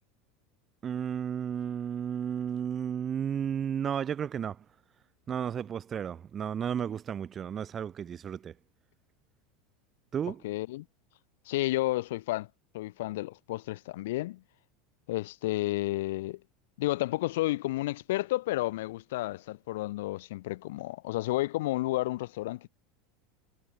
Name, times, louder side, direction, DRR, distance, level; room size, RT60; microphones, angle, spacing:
voice 1, 0.8-4.7 5.3-8.6 10.1-10.4, right 8 dB, 20° right, 1.6 m, -33 dB
voice 2, 10.4-10.9 11.5-12.5 12.7-14.4 15.1-16.4 16.8-22.7, left 17 dB, 75° left, 2.1 m, -31 dB
supercardioid pair, 170°, 0 cm